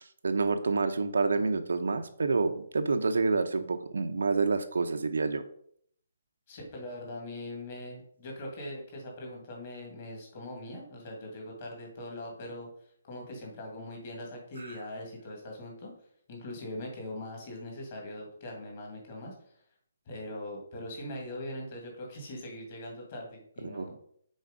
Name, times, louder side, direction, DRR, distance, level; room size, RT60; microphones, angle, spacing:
voice 1, 0.0-5.4 23.6-23.9, right 4 dB, 85° right, 8 dB, 0.8 m, -28 dB
voice 2, 6.5-15.9 16.3-19.5 20.1-24.0, left 1 dB, 25° left, 0 dB, 2.0 m, -41 dB
6.4 x 4.4 x 5.0 m, 0.64 s
hypercardioid pair, 175°, 0 cm